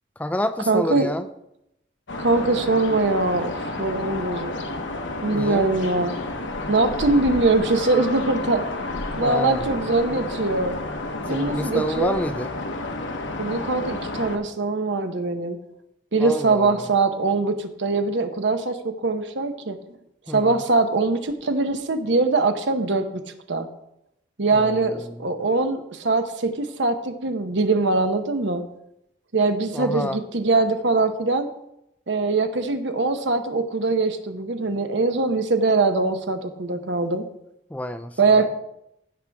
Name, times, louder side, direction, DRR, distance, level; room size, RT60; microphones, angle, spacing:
voice 1, 0.2-1.3 5.3-5.7 9.2-9.7 11.3-12.6 16.2-16.9 20.3-20.6 24.5-25.2 29.7-30.2 37.7-38.2, left 1 dB, 10° left, 10 dB, 0.3 m, -28 dB
voice 2, 0.7-1.1 2.2-4.7 5.2-6.1 6.7-8.7 9.1-10.8 11.3-12.2 13.4-15.6 16.1-19.8 20.3-23.1 23.5-23.7 24.4-28.6 29.3-31.5 32.1-37.3 38.2-38.5, right 3 dB, 75° right, 8 dB, 0.9 m, -22 dB
sound 1, 2.1-14.4, left 2 dB, 85° left, 1.1 m, -31 dB
15.0 x 6.2 x 3.5 m, 0.82 s
head